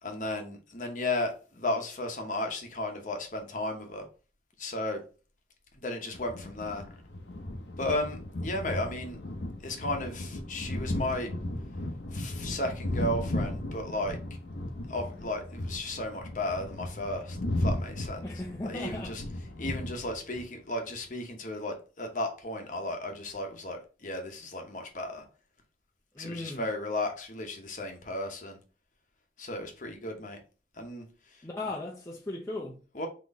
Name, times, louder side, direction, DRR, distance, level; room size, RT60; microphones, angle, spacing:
voice 1, 0.0-4.0 4.6-5.0 5.8-6.8 7.8-9.2 9.6-11.3 12.1-14.2 14.9-18.2 18.6-25.2 26.2-28.6 29.4-30.4 30.8-31.0 32.9-33.1, left 1 dB, 45° left, 0.9 m, -34 dB
sound 1, 6.1-20.4, left 1 dB, 75° left, 0.8 m, -36 dB
voice 2, 18.2-19.2 26.1-26.7 31.4-32.8, left 2 dB, 15° left, 0.6 m, -37 dB
4.0 x 3.0 x 3.5 m
head